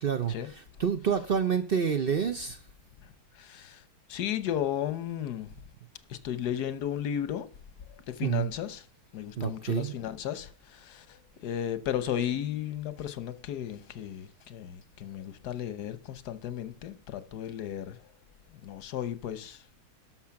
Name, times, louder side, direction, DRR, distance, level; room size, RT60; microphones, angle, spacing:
voice 1, 0.0-2.6 8.2-8.5 9.4-9.9, right 7 dB, 50° right, 0.7 m, -28 dB
voice 2, 3.4-3.8 4.1-5.5 6.1-7.5 8.1-8.9 9.1-18.0 18.5-19.6, left 10 dB, 85° left, 1.4 m, -34 dB
11.5 x 6.3 x 5.9 m
omnidirectional pair, 1.7 m